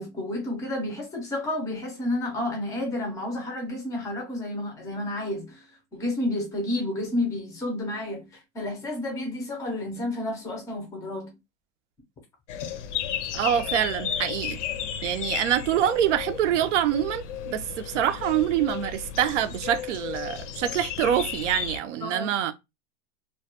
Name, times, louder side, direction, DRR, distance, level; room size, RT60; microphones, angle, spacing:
voice 1, 0.0-5.7 5.9-11.3 22.0-22.3, left 1 dB, 10° left, 0.4 m, -31 dB
sound 1, 12.5-21.8, left 9 dB, 85° left, 0.5 m, -34 dB
voice 2, 13.3-14.6 15.0-22.5, right 10 dB, 90° right, 0.5 m, -25 dB
2.2 x 2.2 x 2.8 m
supercardioid pair, 160°, 35 cm